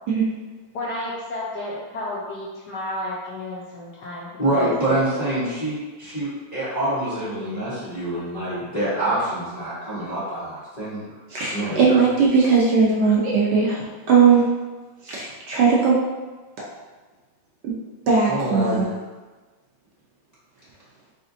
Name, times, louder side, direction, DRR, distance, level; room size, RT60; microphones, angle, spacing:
voice 1, 0.7-5.0, left 1 dB, 70° left, -5 dB, 1.0 m, -32 dB
voice 2, 4.4-11.0 11.5-12.0 18.3-18.9, right 1 dB, 30° left, -11 dB, 0.7 m, -26 dB
voice 3, 11.3-14.4 15.0-16.0 17.6-17.7 18.1-18.8, right 5 dB, 65° right, -4 dB, 1.1 m, -18 dB
4.2 x 3.8 x 2.6 m, 1.3 s
omnidirectional pair, 2.3 m